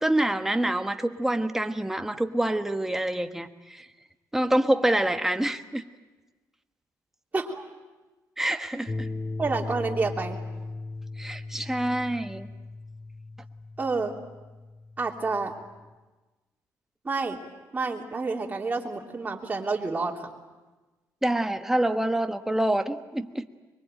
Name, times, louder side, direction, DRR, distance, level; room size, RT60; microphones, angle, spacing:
voice 1, 0.0-3.8 4.3-5.8 8.4-9.1 11.2-12.5 21.2-23.5, right 1 dB, 5° right, 7 dB, 1.3 m, -26 dB
voice 2, 7.3-7.7 9.4-10.4 13.8-14.1 15.0-15.5 17.0-17.4 17.7-20.2, right 3 dB, 25° right, -1 dB, 3.1 m, -29 dB
sound 1, 8.9-15.9, left 3 dB, 25° left, 0.9 m, -38 dB
24.0 x 23.0 x 9.0 m, 1.2 s
cardioid pair, 105°, 7 cm